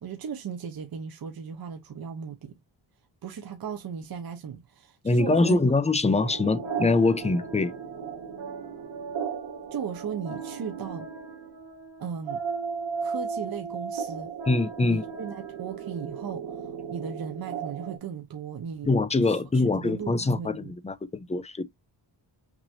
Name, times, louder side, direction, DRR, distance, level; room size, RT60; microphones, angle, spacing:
voice 1, 0.0-2.5 3.2-5.8 9.7-11.1 12.0-12.4 13.0-14.3 14.9-18.9 19.2-20.7, right 7 dB, 50° right, 1.0 m, -37 dB
voice 2, 5.0-7.7 14.5-15.0 18.8-21.6, left 3 dB, 15° left, 0.6 m, -24 dB
sound 1, 6.2-18.0, right 6 dB, 80° right, 1.8 m, -36 dB
6.1 x 3.0 x 2.7 m
cardioid pair, 110°, 45 cm